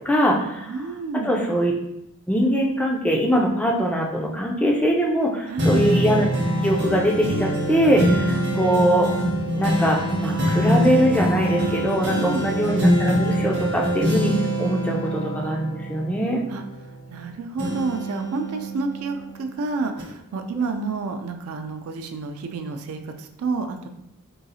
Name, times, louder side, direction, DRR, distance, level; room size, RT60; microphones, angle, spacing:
voice 1, 0.1-0.9 1.1-1.7 2.3-6.3 6.6-9.1 9.5-14.3 14.6-16.4 20.7-20.8, equal, 5° left, -1 dB, 0.3 m, -22 dB
voice 2, 0.6-1.3 5.5-5.8 12.2-12.5 16.5-16.6 17.1-23.9, right 4 dB, 75° right, 5 dB, 0.4 m, -29 dB
sound 1, 5.6-17.2 17.6-19.5 20.0-20.1, equal, 50° right, 0.7 m, -24 dB
3.8 x 2.3 x 2.7 m, 0.84 s
head